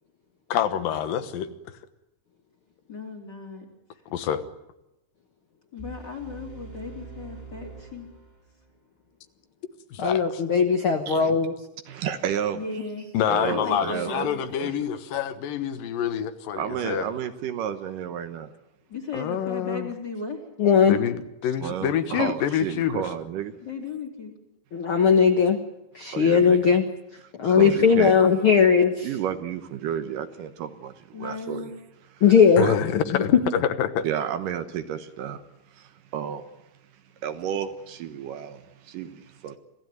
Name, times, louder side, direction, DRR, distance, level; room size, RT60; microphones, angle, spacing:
voice 1, 0.5-1.5 4.1-4.4 9.9-10.2 13.1-17.1 19.1-19.9 20.9-21.1 21.4-23.0 32.6-32.9 33.2-33.3 33.8-34.1, left 9 dB, 80° left, 3.0 m, -27 dB
voice 2, 2.9-3.6 5.7-8.1 12.5-13.1 13.5-14.4 18.9-20.4 23.6-24.3 31.1-31.7, left 3 dB, 30° left, 3.4 m, -35 dB
sound 1, 5.8-8.8, right 4 dB, 15° right, 2.7 m, -44 dB
voice 3, 10.0-11.7 20.6-21.0 24.7-25.6 25.9-26.8 27.1-29.2 32.2-32.7 33.1-33.4, left 6 dB, 55° left, 1.6 m, -19 dB
voice 4, 11.9-12.8 13.3-14.7 16.6-18.5 21.6-23.5 26.1-26.6 27.6-28.1 29.0-31.7 32.6-32.7 34.0-35.4 35.7-36.5 37.2-39.6, right 9 dB, 75° right, 2.6 m, -31 dB
26.0 x 16.0 x 9.2 m
omnidirectional pair, 3.9 m